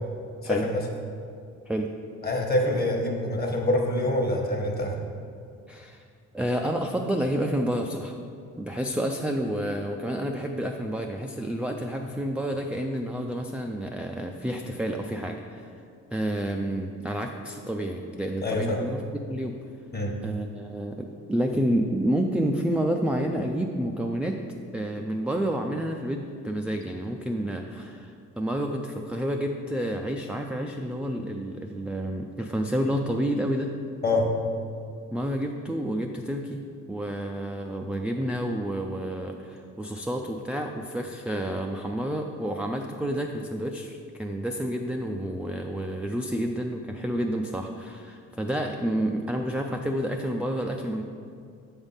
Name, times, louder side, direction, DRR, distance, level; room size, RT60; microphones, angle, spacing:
voice 1, 0.4-0.8 2.2-4.9 18.4-18.8 19.9-20.1 34.0-34.3, left 1 dB, 30° left, 1 dB, 1.2 m, -25 dB
voice 2, 5.7-6.0 6.3-8.2 8.6-15.6 16.1-19.5 20.2-24.4 24.7-33.7 35.1-36.6 36.9-51.0, right 1 dB, 5° right, 2 dB, 0.3 m, -29 dB
7.1 x 3.5 x 5.5 m, 2.3 s
cardioid pair, 85°, 30 cm